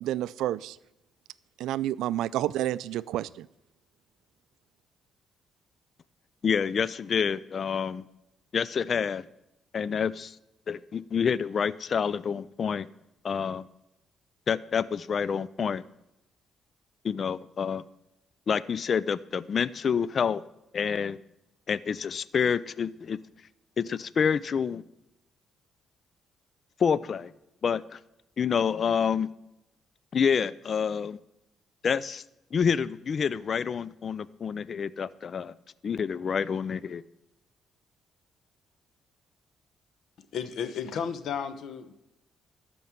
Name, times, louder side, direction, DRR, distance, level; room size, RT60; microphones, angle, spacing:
voice 1, 0.0-0.8 1.6-3.5, right 13 dB, 85° right, 18 dB, 0.3 m, -30 dB
voice 2, 6.4-8.0 8.5-9.2 9.7-10.4 10.7-12.9 13.2-13.6 14.5-15.8 17.0-17.8 18.5-20.4 20.7-21.2 21.7-23.2 23.8-24.8 26.8-27.3 27.6-28.0 28.4-29.3 30.1-31.2 31.8-32.2 32.5-35.5 35.8-37.0, left 6 dB, 50° left, 19 dB, 0.4 m, -28 dB
voice 3, 40.2-41.9, left 7 dB, 70° left, 11 dB, 1.0 m, -33 dB
12.5 x 5.4 x 7.5 m, 0.88 s
cardioid pair, 90°, 0 cm